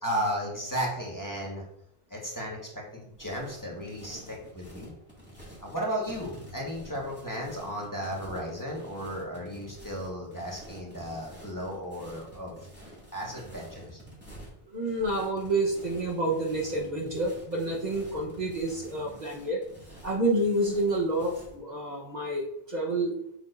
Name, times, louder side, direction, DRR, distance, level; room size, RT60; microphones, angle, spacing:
voice 1, 0.0-1.6 2.1-4.9 5.6-12.5 13.1-14.0, equal, 20° left, -3 dB, 1.5 m, -34 dB
sound 1, 3.1-21.6, equal, 10° right, 2.4 m, -49 dB
voice 2, 14.7-19.6 20.0-23.1, right 1 dB, 45° right, -2 dB, 1.2 m, -29 dB
7.2 x 6.4 x 2.6 m, 0.73 s
omnidirectional pair, 1.0 m